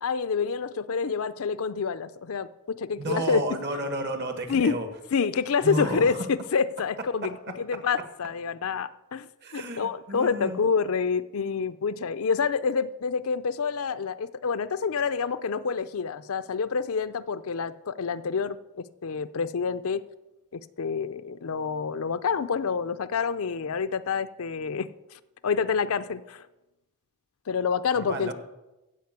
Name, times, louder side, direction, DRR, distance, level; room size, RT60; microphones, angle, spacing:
voice 1, 0.0-3.6 4.5-4.8 5.1-9.3 9.5-20.0 20.5-24.9 25.4-26.5 27.5-28.3, left 5 dB, 70° left, 13 dB, 0.5 m, -28 dB
voice 2, 3.0-4.9 5.6-6.1 9.4-10.6 28.0-28.3, right 1 dB, 50° right, 7 dB, 1.6 m, -32 dB
15.0 x 5.2 x 8.0 m, 1.0 s
head